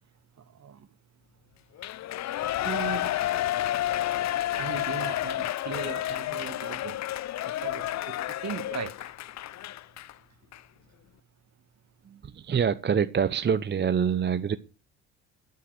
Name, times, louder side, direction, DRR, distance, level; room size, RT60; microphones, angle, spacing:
voice 1, 0.5-0.9 2.6-3.1 4.6-7.0 7.4-9.1, right 8 dB, 45° right, 1.8 m, -38 dB
Shout / Cheering, 1.8-10.1 10.5-10.6, left 13 dB, 45° left, 0.7 m, -30 dB
voice 2, 12.0-14.6, right 7 dB, 30° right, 0.8 m, -26 dB
13.0 x 9.4 x 6.3 m
hypercardioid pair, 55°, 38 cm